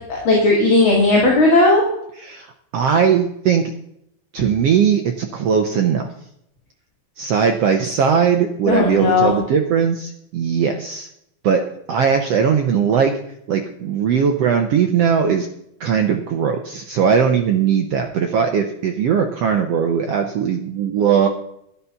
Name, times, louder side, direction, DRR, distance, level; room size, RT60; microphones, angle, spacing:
voice 1, 0.1-1.8 8.7-9.4, left 2 dB, 40° left, -2 dB, 2.8 m, -15 dB
voice 2, 2.7-3.7 4.3-6.0 7.2-11.1 11.4-11.6 11.9-13.1 13.5-15.5 15.8-21.3, right 7 dB, 85° right, 5 dB, 1.3 m, -19 dB
12.0 x 8.3 x 5.7 m, 0.75 s
omnidirectional pair, 4.1 m